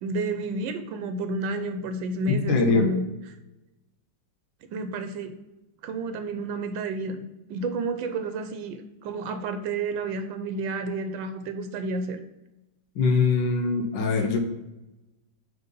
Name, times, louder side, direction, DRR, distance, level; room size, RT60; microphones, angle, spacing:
voice 1, 0.0-3.1 4.7-5.4 5.8-7.2 7.5-12.2, right 3 dB, 90° right, 8 dB, 1.4 m, -31 dB
voice 2, 2.3-2.9 12.9-14.4, left 4 dB, 90° left, 4 dB, 1.6 m, -22 dB
5.2 x 4.0 x 5.2 m, 0.98 s
omnidirectional pair, 2.0 m